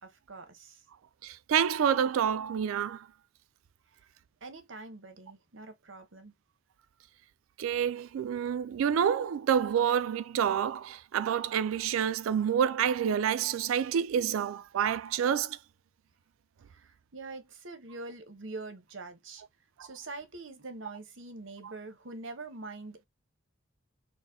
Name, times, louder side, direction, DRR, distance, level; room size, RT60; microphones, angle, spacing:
voice 1, 0.0-0.8 4.4-6.3 16.7-19.4 19.8-23.1, right 3 dB, 70° right, 1.0 m, -44 dB
voice 2, 1.2-3.1 7.6-15.6 19.8-19.9, right 8 dB, 85° right, 0.3 m, -28 dB
4.1 x 2.2 x 3.5 m
head